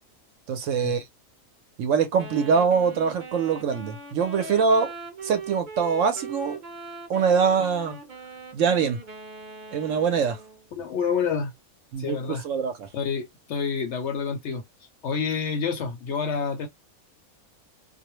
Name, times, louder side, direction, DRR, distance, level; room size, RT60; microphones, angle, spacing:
voice 1, 0.5-1.0 1.8-4.9 5.2-6.6 7.1-8.0 8.5-9.0 9.7-10.4 11.9-12.9, right 6 dB, 70° right, 0.9 m, -23 dB
Wind instrument woodwind instrument, 2.2-10.7, right 3 dB, 45° right, 0.6 m, -41 dB
voice 2, 10.8-11.5 12.0-12.4 12.9-14.6 15.0-16.7, left 6 dB, 65° left, 0.7 m, -28 dB
2.4 x 2.0 x 2.9 m
omnidirectional pair, 1.5 m